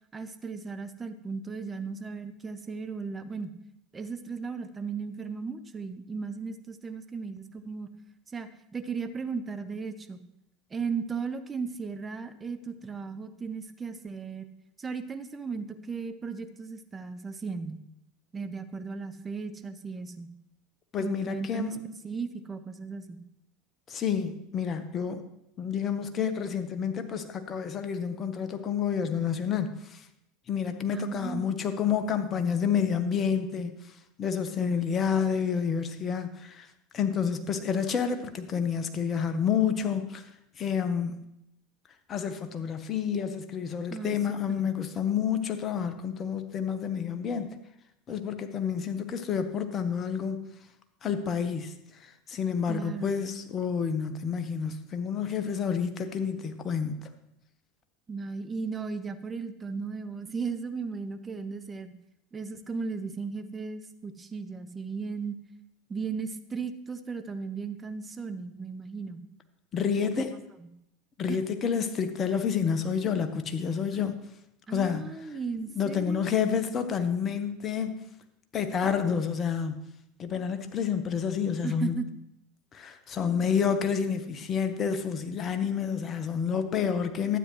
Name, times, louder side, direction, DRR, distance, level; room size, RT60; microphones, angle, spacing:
voice 1, 0.1-3.5 3.9-7.9 8.3-10.2 10.7-14.5 14.8-17.8 18.3-20.3 21.0-21.8 22.0-23.2 30.9-31.5 43.9-44.7 52.7-53.1 58.1-61.9 62.3-65.4 65.9-69.2 70.0-70.3 70.6-70.7 71.3-71.4 73.9-74.1 74.7-76.3 81.6-82.2, right 5 dB, 20° right, 9 dB, 0.9 m, -36 dB
voice 2, 20.9-21.8 23.9-25.2 25.6-30.0 30.5-33.7 34.2-36.7 36.9-40.2 40.6-41.2 42.1-47.5 48.1-50.4 51.0-51.7 52.3-57.1 69.7-70.4 71.2-74.2 74.7-75.0 75.7-77.9 78.5-79.8 80.2-82.0 82.7-87.4, left 7 dB, 35° left, 9 dB, 1.1 m, -29 dB
12.5 x 9.0 x 3.2 m, 0.80 s
hypercardioid pair, 80°, 0 cm